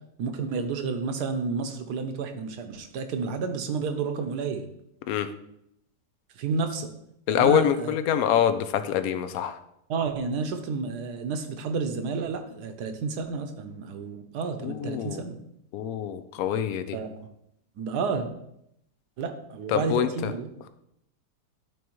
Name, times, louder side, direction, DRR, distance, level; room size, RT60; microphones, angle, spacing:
voice 1, 0.2-4.7 6.4-6.9 7.3-7.9 9.9-15.4 16.9-17.3 17.8-18.3 19.2-20.5, right 5 dB, 70° right, 7 dB, 1.3 m, -30 dB
voice 2, 7.3-9.6 14.6-15.2 15.7-17.0 19.7-20.3, left 10 dB, 70° left, 10 dB, 1.0 m, -25 dB
11.0 x 4.6 x 3.1 m, 0.78 s
omnidirectional pair, 1.8 m